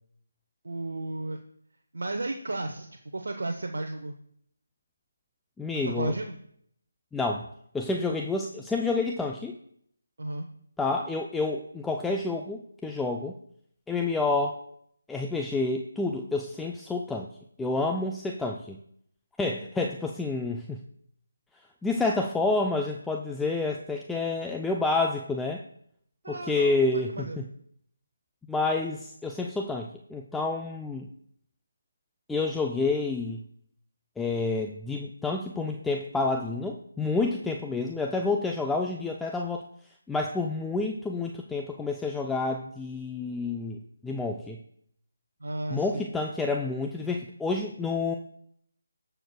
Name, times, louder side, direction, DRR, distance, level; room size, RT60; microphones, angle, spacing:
voice 1, 0.6-1.4 1.9-2.9 3.1-4.1 5.7-6.3 10.2-10.5 26.2-27.4 45.4-46.1, right 2 dB, 70° right, 5 dB, 0.8 m, -33 dB
voice 2, 5.6-6.1 7.1-7.5 7.7-9.6 10.8-13.3 13.9-14.6 15.1-17.3 17.6-18.8 19.4-20.8 21.8-25.6 26.3-27.4 28.5-31.1 32.3-33.4 34.2-39.6 40.1-44.6 45.7-48.1, left 3 dB, 5° left, 1 dB, 0.4 m, -29 dB
18.5 x 6.7 x 2.2 m, 0.68 s
figure-of-eight pair, 155°, 0 cm